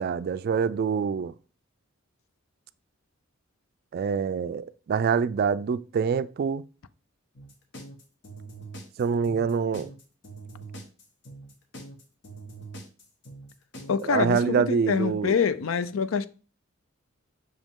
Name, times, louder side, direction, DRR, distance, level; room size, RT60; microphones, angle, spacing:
voice 1, 0.0-1.3 3.9-6.6 9.0-9.9 14.0-15.3, right 6 dB, 50° right, 0.3 m, -25 dB
sound 1, 7.3-14.0, right 2 dB, 60° left, 1.3 m, -43 dB
voice 2, 13.9-16.3, left 6 dB, 85° left, 0.5 m, -25 dB
6.3 x 5.1 x 3.6 m
head